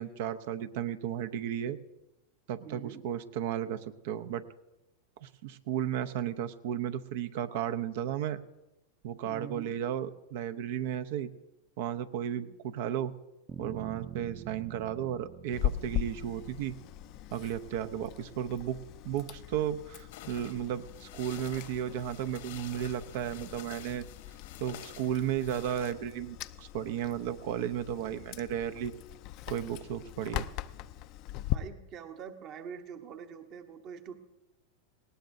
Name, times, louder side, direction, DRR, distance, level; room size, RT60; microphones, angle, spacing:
voice 1, 0.0-1.8 2.5-4.4 5.2-8.4 9.0-11.3 11.8-13.1 13.6-16.7 17.3-18.8 19.0-24.0 24.6-28.9 29.5-30.5, right 10 dB, 65° right, 10 dB, 0.7 m, -34 dB
voice 2, 2.6-3.1 9.2-9.8 12.4-12.5 31.5-34.2, right 7 dB, 40° right, 6 dB, 1.1 m, -44 dB
sound 1, 13.5-17.5, right 9 dB, 25° right, 0.6 m, -47 dB
Chewing mastication, 15.5-31.6, left 14 dB, 50° left, 0.5 m, -40 dB
sound 2, 20.1-25.9, left 11 dB, 70° left, 1.2 m, -50 dB
19.5 x 17.0 x 2.7 m, 0.99 s
hypercardioid pair, 115°, 0 cm